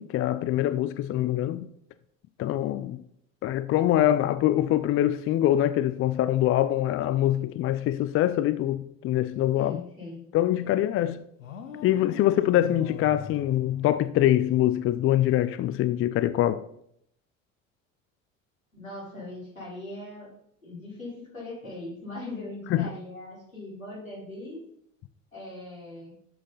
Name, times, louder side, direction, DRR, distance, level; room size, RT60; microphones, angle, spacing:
voice 1, 0.0-1.7 2.4-3.0 3.4-9.8 10.3-11.2 11.8-16.6 22.7-22.9, left 13 dB, 35° left, 0.5 m, -24 dB
voice 2, 9.6-10.3 18.7-20.3 20.6-24.6 25.3-26.1, left 2 dB, 90° left, 4.2 m, -40 dB
sound 1, 11.4-14.5, left 6 dB, 75° left, 1.2 m, -42 dB
11.5 x 7.6 x 3.9 m
figure-of-eight pair, 65°, 40 cm